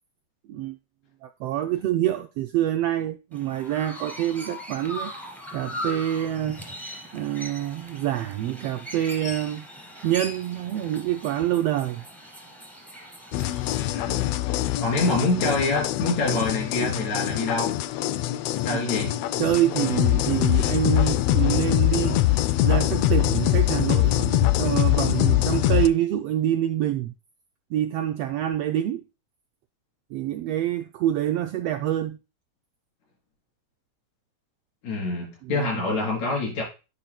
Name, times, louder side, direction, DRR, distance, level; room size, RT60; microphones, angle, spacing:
voice 1, 1.2-5.1 5.5-6.6 7.1-9.7 10.0-12.0 18.7-18.8 19.4-22.3 22.6-27.1 27.7-29.0 30.1-32.2 35.5-35.7, right 12 dB, 90° right, 1.4 m, -26 dB
Chirp tweet, 3.3-13.9, left 1 dB, ahead, 1.5 m, -39 dB
sound 1, 13.3-25.9, left 15 dB, 85° left, 1.4 m, -23 dB
voice 2, 13.9-14.3 14.8-17.9 18.6-19.2 34.8-36.6, left 2 dB, 70° left, 5.1 m, -26 dB
10.5 x 5.4 x 2.2 m
omnidirectional pair, 3.3 m